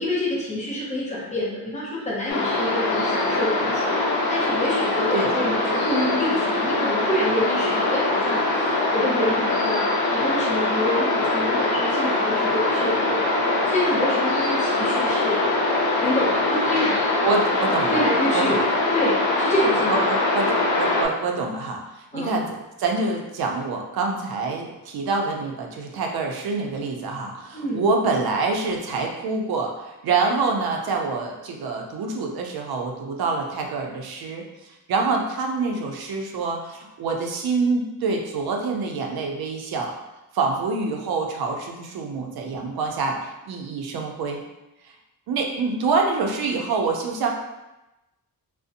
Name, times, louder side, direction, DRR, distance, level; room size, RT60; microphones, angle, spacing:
voice 1, 0.0-13.4 13.7-15.7 16.0-17.0 17.8-18.6 18.9-20.1 22.1-22.3 27.5-27.8, left 1 dB, 20° left, -6 dB, 0.6 m, -27 dB
sound 1, 2.3-21.0, left 2 dB, 85° left, 0.6 m, -23 dB
voice 2, 17.2-18.0 18.3-18.6 19.9-20.5 20.8-39.9 40.3-44.4 45.3-47.3, right 4 dB, 80° right, 1 dB, 0.5 m, -26 dB
2.5 x 2.1 x 2.6 m, 0.99 s
wide cardioid pair, 155°, 36 cm